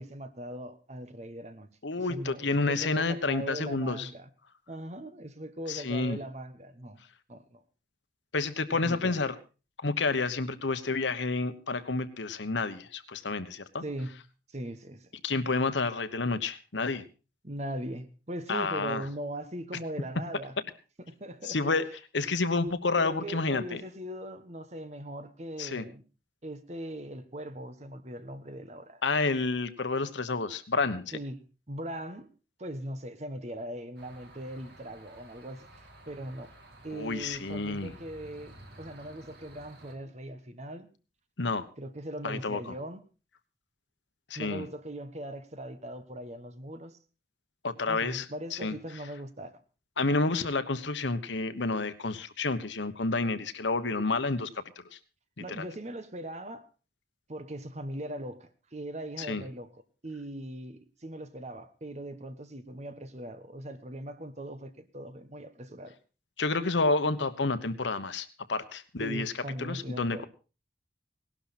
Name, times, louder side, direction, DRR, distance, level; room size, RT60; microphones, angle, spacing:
voice 1, 0.0-1.7 2.0-4.3 4.7-7.0 7.3-7.6 8.8-9.2 13.8-14.1 14.5-15.1 17.4-20.6 21.1-21.6 22.9-26.0 26.4-29.0 31.1-31.4 31.7-32.3 32.6-36.5 36.8-40.9 41.8-43.0 44.3-47.0 47.9-49.6 55.4-56.6 57.3-59.7 60.0-66.0 69.0-70.2, right 1 dB, 40° right, 1.3 m, -40 dB
voice 2, 1.8-4.1 5.7-6.2 8.3-9.4 9.8-13.8 15.2-17.0 18.5-19.0 21.4-21.9 22.1-23.8 25.6-25.8 29.0-31.1 36.9-37.9 41.4-41.7 42.2-42.7 44.3-44.7 47.6-48.3 48.5-48.7 50.0-54.5 54.9-55.0 55.5-55.6 59.2-59.4 66.4-69.3 69.6-70.2, left 3 dB, 80° left, 1.2 m, -29 dB
sound 1, 34.0-39.9, right 1 dB, 60° right, 3.2 m, -53 dB
18.0 x 12.0 x 4.3 m
head